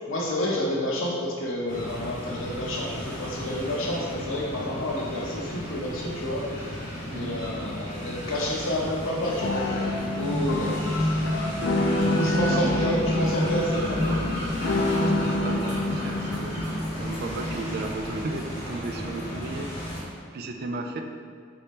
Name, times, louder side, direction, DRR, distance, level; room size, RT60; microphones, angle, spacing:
voice 1, 0.0-6.7 7.1-11.1 11.9-14.2, left 1 dB, 85° left, -2 dB, 0.8 m, -29 dB
sound 1, 1.7-20.0, equal, 30° left, 1.3 m, -35 dB
voice 2, 7.1-7.5 12.4-13.4 15.0-16.6 17.0-19.7 20.3-21.0, right 3 dB, 50° right, 4 dB, 0.3 m, -34 dB
sound 2, 9.4-16.5, left 2 dB, 60° left, 0.4 m, -28 dB
sound 3, 10.2-18.1, left 1 dB, 25° right, 0.7 m, -30 dB
5.1 x 2.8 x 3.4 m, 2.1 s
head